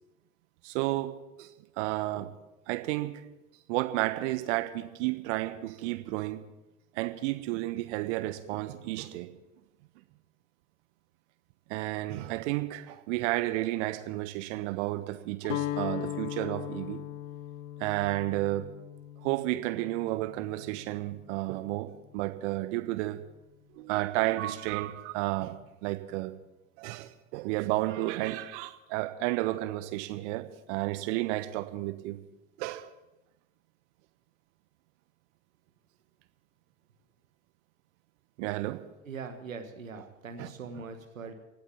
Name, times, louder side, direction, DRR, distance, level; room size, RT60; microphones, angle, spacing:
voice 1, 0.6-1.5 1.8-2.3 2.7-3.2 3.7-6.4 6.9-9.3 11.7-17.0 17.8-18.7 19.2-23.2 23.8-26.3 26.8-32.2 32.6-32.9 38.4-38.8 40.4-40.5, right 17 dB, 60° right, 11 dB, 1.3 m, -32 dB
Guitar, 15.4-21.5, left 13 dB, 65° left, 0.8 m, -39 dB
voice 2, 39.0-41.3, right 4 dB, 80° right, 7 dB, 1.5 m, -41 dB
16.5 x 8.7 x 7.1 m, 0.98 s
figure-of-eight pair, 65°, 39 cm